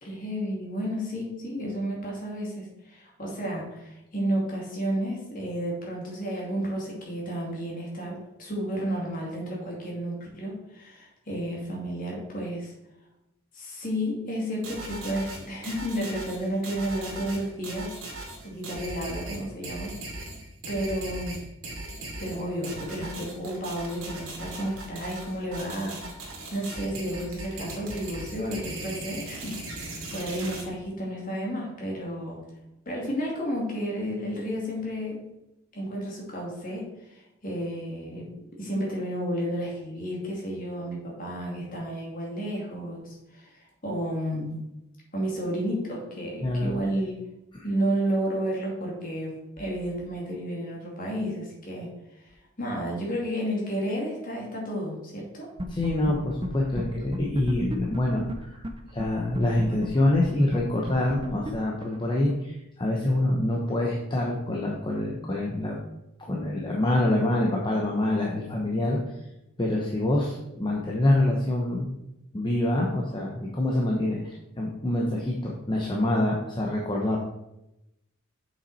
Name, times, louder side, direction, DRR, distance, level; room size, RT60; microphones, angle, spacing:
voice 1, 0.0-12.7 13.5-17.9 18.4-20.0 20.7-21.4 22.2-26.2 26.5-32.4 32.9-35.2 35.7-38.3 38.6-43.5 43.8-44.6 45.1-47.2 47.6-51.9 52.6-55.5, equal, 40° left, -3 dB, 2.5 m, -32 dB
sound 1, 14.6-30.6, right 2 dB, 70° right, 2.4 m, -38 dB
voice 2, 46.4-46.7 47.5-47.6 55.7-58.7 58.9-65.8 66.2-69.0 69.6-72.0 72.3-77.2, left 1 dB, 20° left, -2 dB, 0.9 m, -26 dB
sound 2, 55.6-56.1 56.4-56.5 56.8-56.9 57.1-58.7 59.0-59.1 59.3-62.3, right 1 dB, 25° right, 0.6 m, -33 dB
7.2 x 6.0 x 4.2 m, 0.88 s
head